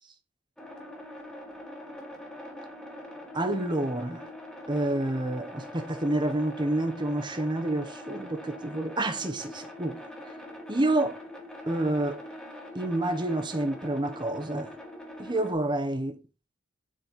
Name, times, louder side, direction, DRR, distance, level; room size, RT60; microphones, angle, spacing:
sound 1, 0.6-15.5, left 1 dB, 5° left, 1.4 m, -43 dB
voice 1, 3.3-4.3 4.7-10.0 10.7-11.2 11.7-12.2 12.7-14.7 15.2-16.2, right 1 dB, 20° right, 0.9 m, -28 dB
7.3 x 4.3 x 4.1 m
head